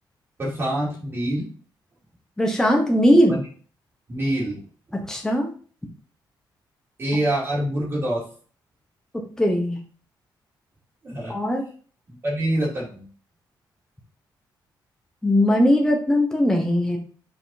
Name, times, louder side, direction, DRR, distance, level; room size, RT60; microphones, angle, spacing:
voice 1, 0.4-1.5 3.3-3.4 4.1-4.6 7.0-8.2 11.0-11.3 12.2-13.0, right 1 dB, 30° right, -6 dB, 2.6 m, -25 dB
voice 2, 2.4-3.3 5.1-5.5 9.4-9.8 11.3-11.6 15.2-17.0, equal, 5° left, 1 dB, 1.1 m, -19 dB
5.8 x 4.5 x 4.2 m, 0.41 s
wide cardioid pair, 175°, 8 cm